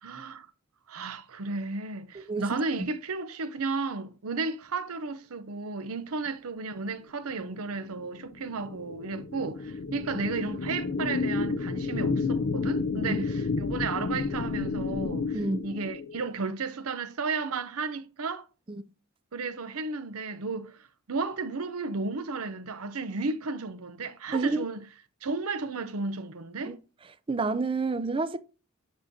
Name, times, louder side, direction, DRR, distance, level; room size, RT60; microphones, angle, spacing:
voice 1, 0.0-0.5 0.9-18.5 19.3-20.8 21.1-24.8 25.2-26.8, right 4 dB, 85° right, 0.7 m, -33 dB
voice 2, 2.1-2.9 13.1-13.2 15.3-15.6 18.7-18.8 24.3-24.6 26.6-26.8 27.3-28.4, right 3 dB, 25° right, 0.4 m, -29 dB
sound 1, 7.5-16.3, left 4 dB, 60° left, 0.5 m, -31 dB
7.5 x 6.2 x 2.8 m
head